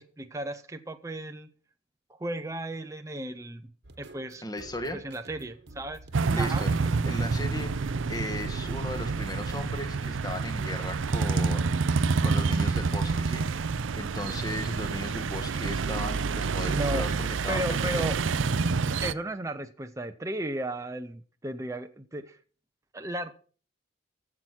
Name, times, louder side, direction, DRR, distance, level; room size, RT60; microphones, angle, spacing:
voice 1, 0.0-1.5 2.1-3.7 4.0-4.4 5.0-6.0 6.4-6.6 16.7-18.2 19.0-22.4 22.9-23.3, right 1 dB, 15° right, 7 dB, 0.6 m, -34 dB
sound 1, 3.8-10.8, right 2 dB, 55° right, 1.3 m, -50 dB
voice 2, 4.4-5.0 6.3-6.8 7.1-11.8 12.2-13.5 13.9-18.1, left 1 dB, 20° left, 8 dB, 1.4 m, -37 dB
sound 2, 6.1-19.1, right 4 dB, 70° right, 0.5 m, -28 dB
15.0 x 5.9 x 6.1 m, 0.41 s
head